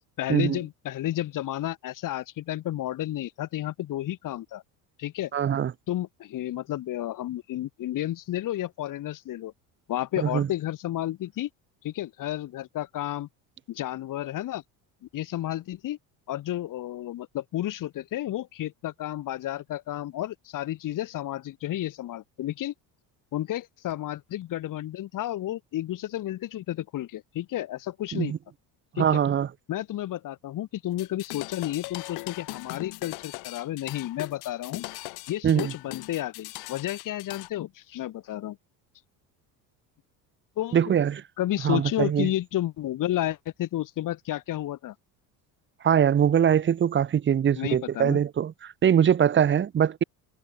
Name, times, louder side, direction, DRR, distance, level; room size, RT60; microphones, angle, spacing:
voice 1, 0.2-4.6 5.0-5.3 5.9-9.5 9.9-11.5 11.8-13.3 13.7-14.6 15.1-16.0 16.3-22.7 23.3-28.3 29.0-29.2 29.7-34.8 35.3-38.6 40.6-40.9 41.4-45.0 47.5-48.2, left 13 dB, 55° left, 7.3 m, -31 dB
voice 2, 5.3-5.7 10.2-10.5 28.1-28.4 29.0-29.5 35.4-35.7 40.7-41.2 41.6-42.3 45.8-50.0, right 9 dB, 30° right, 1.2 m, -22 dB
sound 1, 30.9-37.5, left 24 dB, 80° left, 4.6 m, -39 dB
cardioid pair, 125°, 38 cm